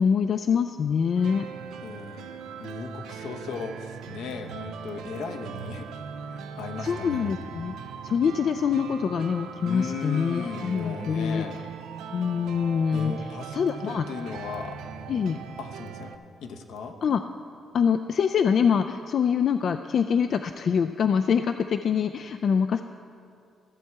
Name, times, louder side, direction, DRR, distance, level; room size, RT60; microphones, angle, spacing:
voice 1, 0.0-1.5 6.8-7.7 8.0-11.4 12.1-13.2 13.5-14.0 15.1-15.4 17.0-17.2 17.7-22.8, left 7 dB, 55° left, 8 dB, 0.3 m, -24 dB
sound 1, 1.2-16.1, right 6 dB, 85° right, 0.5 m, -40 dB
voice 2, 1.8-2.3 2.6-5.9 6.3-7.3 9.6-11.6 12.9-14.8 15.6-16.1 16.4-17.0, left 4 dB, 80° left, 4 dB, 0.9 m, -36 dB
14.5 x 7.2 x 4.6 m, 2.4 s
cardioid pair, 90°, 0 cm